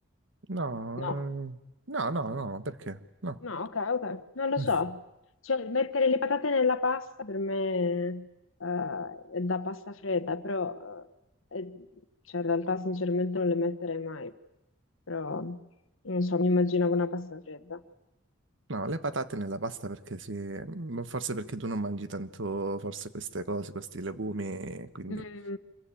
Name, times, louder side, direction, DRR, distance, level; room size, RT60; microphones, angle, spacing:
voice 1, 0.5-1.6 1.9-3.4 4.6-4.7 18.7-25.2, right 2 dB, 65° right, 12 dB, 1.3 m, -34 dB
voice 2, 3.4-5.0 5.4-8.3 8.6-11.1 11.5-11.8 12.3-14.3 15.1-15.6 16.0-17.8 25.1-25.6, left 3 dB, 80° left, 12 dB, 1.2 m, -29 dB
26.0 x 22.5 x 8.7 m, 0.92 s
head